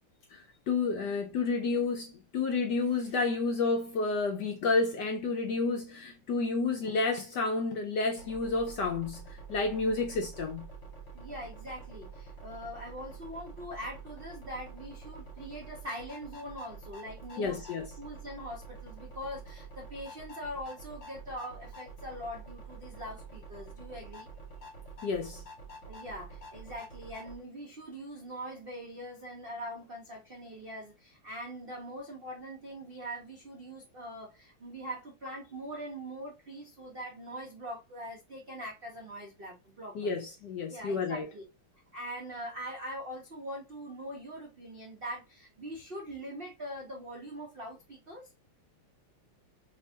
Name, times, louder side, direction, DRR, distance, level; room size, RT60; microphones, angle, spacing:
voice 1, 0.7-9.2 9.5-10.6 17.4-17.9 25.0-25.4 39.9-41.3, left 4 dB, 70° left, 1.0 m, -30 dB
sound 1, 8.2-27.4, right 4 dB, 40° left, 1.8 m, -47 dB
voice 2, 11.1-24.3 25.8-40.2 40.7-41.4 41.9-48.3, equal, 85° right, 0.5 m, -42 dB
3.4 x 3.3 x 2.7 m
omnidirectional pair, 2.4 m